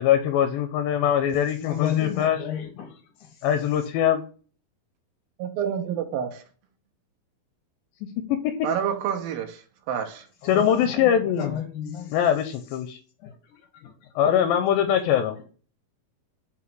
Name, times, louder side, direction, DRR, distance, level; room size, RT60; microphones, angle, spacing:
voice 1, 0.0-2.4 3.4-4.2 8.3-8.6 10.4-11.6 12.1-13.0 14.2-15.4, left 9 dB, 80° left, 2.4 m, -22 dB
voice 2, 1.6-3.4 10.4-12.2 13.2-14.1, left 9 dB, 65° left, 2.4 m, -32 dB
voice 3, 5.4-6.4 8.6-9.6 9.9-10.3, right 8 dB, 80° right, 2.6 m, -28 dB
6.1 x 3.8 x 6.0 m
omnidirectional pair, 4.2 m